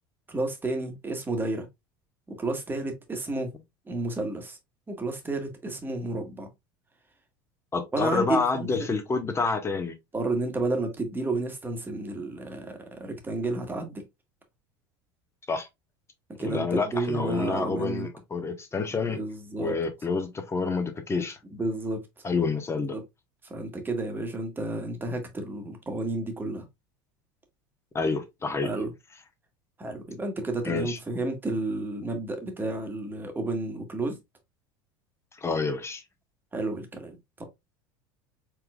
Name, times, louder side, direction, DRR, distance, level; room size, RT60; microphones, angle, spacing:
voice 1, 0.3-1.7 2.3-3.5 3.9-4.6 4.9-6.5 7.9-8.7 10.1-14.0 16.4-18.1 19.1-19.7 21.5-22.0 22.9-23.0 23.4-26.6 28.6-28.9 29.8-34.2 36.5-37.4, right 2 dB, 15° right, 1.4 m, -31 dB
voice 2, 7.7-9.9 15.5-15.7 16.4-19.2 19.6-21.4 22.2-22.9 27.9-28.7 30.6-31.0 35.4-36.0, left 4 dB, 20° left, 1.1 m, -28 dB
4.5 x 3.6 x 2.3 m
hypercardioid pair, 95°, 12 cm